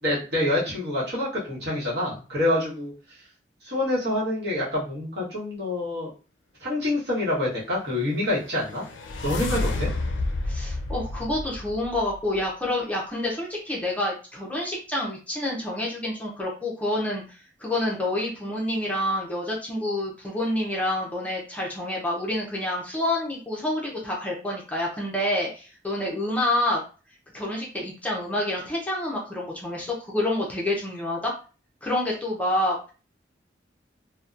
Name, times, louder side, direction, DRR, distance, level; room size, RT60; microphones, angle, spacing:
voice 1, 0.0-2.9 3.6-6.1 6.6-8.8 9.2-9.9, left 1 dB, 60° right, -6 dB, 1.1 m, -26 dB
sound 1, 8.2-12.4, left 2 dB, 80° left, 0.4 m, -30 dB
voice 2, 10.4-26.8 27.3-31.3 31.8-32.9, left 1 dB, 10° left, -3 dB, 0.5 m, -28 dB
2.7 x 2.1 x 2.4 m, 0.35 s
head